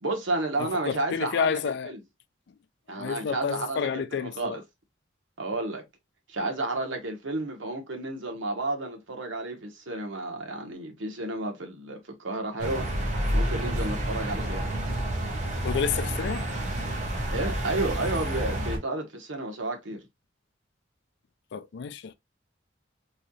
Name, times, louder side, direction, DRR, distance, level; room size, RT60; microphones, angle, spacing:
voice 1, 0.0-1.6 1.8-2.0 2.9-4.6 5.4-5.8 6.3-12.9 13.3-14.7 17.3-20.1, right 2 dB, 85° right, 1.0 m, -31 dB
voice 2, 0.6-1.9 2.9-4.6 15.6-16.4 21.5-22.1, left 6 dB, 60° left, 0.3 m, -30 dB
sound 1, 12.6-18.8, right 1 dB, 40° right, 0.8 m, -29 dB
3.1 x 2.8 x 2.6 m
head